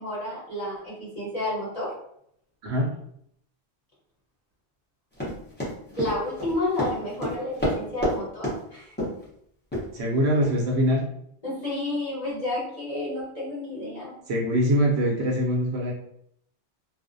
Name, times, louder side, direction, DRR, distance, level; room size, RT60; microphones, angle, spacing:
voice 1, 0.0-1.9 5.9-8.9 11.4-14.1, left 1 dB, 35° left, -7 dB, 1.0 m, -31 dB
Run, 5.2-8.2 8.4-8.6 9.0-9.2 9.7-9.8 10.4-10.5, equal, 10° left, 0.6 m, -28 dB
voice 2, 9.9-11.0 14.3-15.9, equal, 70° right, -1 dB, 0.8 m, -23 dB
2.4 x 2.0 x 2.5 m, 0.70 s
omnidirectional pair, 1.2 m